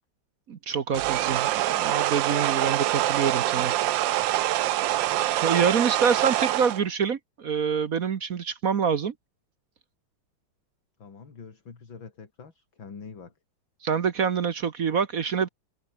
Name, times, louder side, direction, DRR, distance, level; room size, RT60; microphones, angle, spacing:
voice 1, 0.5-3.7 5.1-9.1 13.8-15.5, right 6 dB, 50° right, 1.3 m, -26 dB
sound 1, 0.9-6.8, right 14 dB, 70° right, 1.3 m, -25 dB
voice 2, 11.0-13.3, left 5 dB, 65° left, 3.8 m, -45 dB
omnidirectional pair, 2.3 m